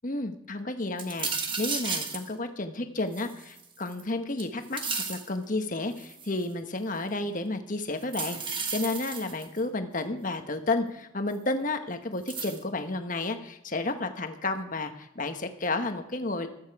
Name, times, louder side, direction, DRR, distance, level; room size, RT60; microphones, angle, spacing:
voice 1, 0.0-4.8 5.1-16.5, left 2 dB, 45° left, 7 dB, 1.4 m, -31 dB
sound 1, 1.0-2.3 3.1-4.0 4.4-5.3 6.0-6.4 8.0-9.6 11.3-11.4 12.3-12.6, right 5 dB, 25° right, 1.5 m, -33 dB
14.5 x 13.0 x 4.9 m, 0.86 s
head